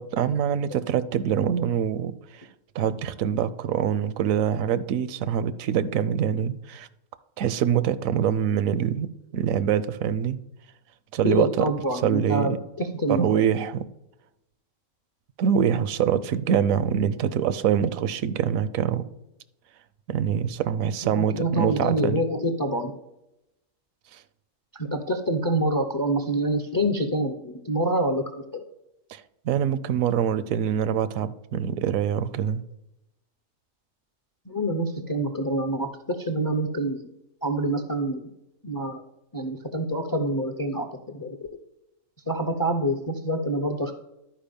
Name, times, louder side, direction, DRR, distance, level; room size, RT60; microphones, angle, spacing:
voice 1, 0.0-2.4 2.7-6.9 7.4-10.4 11.1-11.7 11.9-12.6 13.1-13.8 15.4-19.1 20.1-22.2 24.1-24.2 29.1-32.6, right 8 dB, 85° right, 15 dB, 1.0 m, -25 dB
voice 2, 11.2-13.4 21.0-23.0 24.7-28.2 28.5-28.6 34.5-37.1 37.4-38.3 38.6-39.0 39.3-41.5 42.3-43.9, right 1 dB, 30° left, 6 dB, 0.3 m, -26 dB
11.5 x 4.7 x 5.2 m, 0.86 s
omnidirectional pair, 1.4 m